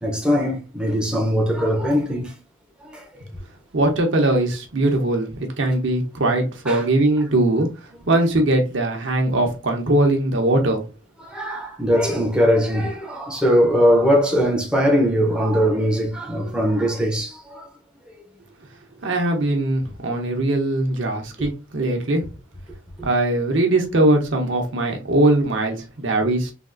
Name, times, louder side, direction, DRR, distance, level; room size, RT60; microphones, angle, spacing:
voice 1, 0.0-2.4 2.8-3.1 6.7-6.9 11.2-17.7 23.0-23.1, equal, 5° right, 0.5 m, -20 dB
voice 2, 3.7-7.7 8.1-10.8 19.0-22.3 23.0-26.5, right 2 dB, 65° right, 0.8 m, -20 dB
3.4 x 2.4 x 2.4 m
head